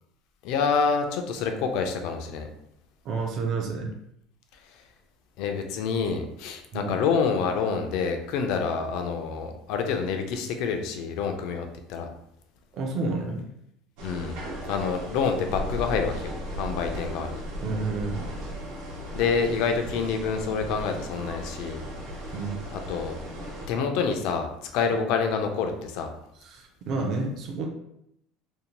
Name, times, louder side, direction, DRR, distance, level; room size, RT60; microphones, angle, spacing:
voice 1, 0.4-2.5 5.4-12.1 14.0-14.4 14.7-17.4 19.1-21.8 22.7-23.2 23.7-26.1, left 5 dB, 60° left, 5 dB, 0.4 m, -27 dB
voice 2, 3.0-3.9 6.7-7.0 12.7-13.4 17.6-18.2 22.3-22.6 26.4-27.7, right 3 dB, 40° right, 1 dB, 0.4 m, -30 dB
sound 1, 14.0-23.7, equal, 80° right, 0.8 m, -36 dB
2.6 x 2.1 x 2.9 m, 0.78 s
cardioid pair, 170°, 0 cm